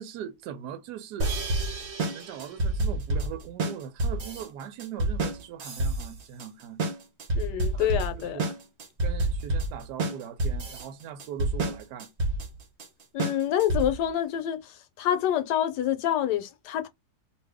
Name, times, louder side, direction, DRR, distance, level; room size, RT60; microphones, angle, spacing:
voice 1, 0.0-1.3 2.1-6.8 7.7-8.5 9.0-12.1, right 9 dB, 75° right, 1.2 m, -40 dB
sound 1, 1.2-14.1, right 1 dB, 50° right, 0.9 m, -29 dB
voice 2, 7.3-8.5 13.1-16.9, left 11 dB, 75° left, 1.2 m, -27 dB
2.6 x 2.6 x 3.4 m
omnidirectional pair, 1.8 m